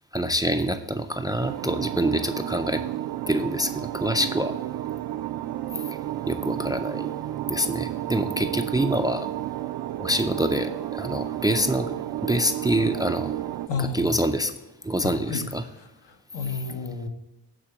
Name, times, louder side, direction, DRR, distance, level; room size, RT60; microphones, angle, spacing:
voice 1, 0.1-2.8 3.3-4.6 5.7-6.0 6.3-7.1 7.5-9.3 10.0-13.4 13.8-14.5 14.8-15.6, right 1 dB, 10° right, 8 dB, 0.3 m, -26 dB
sound 1, 1.4-13.7, right 13 dB, 65° right, 0.5 m, -32 dB
voice 2, 13.7-14.2 15.0-15.5 15.7-17.1, left 4 dB, 70° left, 4 dB, 1.1 m, -32 dB
8.8 x 3.7 x 6.9 m, 0.92 s
cardioid pair, 110°, 43 cm